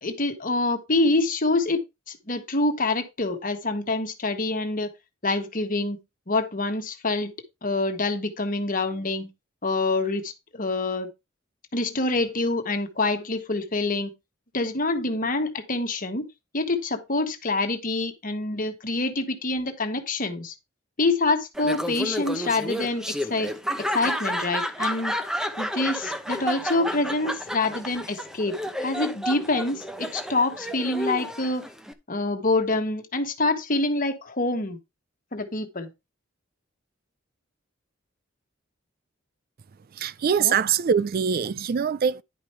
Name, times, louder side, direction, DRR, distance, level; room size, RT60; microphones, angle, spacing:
voice 1, 0.0-1.8 2.1-4.9 5.2-6.0 6.3-7.3 7.6-9.3 9.6-11.1 11.7-14.1 14.5-16.2 16.5-20.5 21.0-23.5 23.8-25.2 25.6-31.6 32.1-34.8 35.3-35.9 40.4-40.5, left 2 dB, 45° left, 1.4 m, -26 dB
Laughter, 21.6-31.9, equal, 5° right, 0.8 m, -31 dB
voice 2, 39.9-42.2, right 7 dB, 50° right, 0.4 m, -23 dB
10.5 x 5.1 x 4.4 m
head